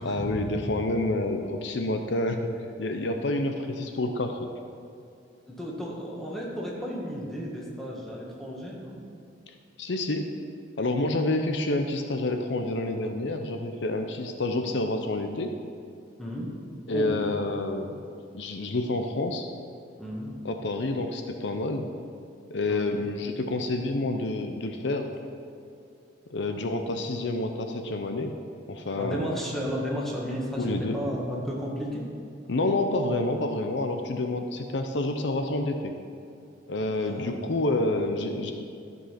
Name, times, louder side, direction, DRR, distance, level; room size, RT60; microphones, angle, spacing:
voice 1, 0.0-2.4 2.8-4.4 9.8-10.3 10.8-15.5 16.9-18.0 18.3-19.5 20.4-21.8 22.5-25.1 26.3-28.3 28.7-29.4 30.6-31.0 32.5-35.9 36.7-38.5, left 2 dB, 65° left, 5 dB, 0.7 m, -28 dB
voice 2, 5.5-9.0 16.2-16.6 16.9-17.3 20.0-20.4 22.7-23.0 29.0-32.1 37.0-37.4, equal, ahead, -4 dB, 1.6 m, -33 dB
13.0 x 5.4 x 5.8 m, 2.4 s
head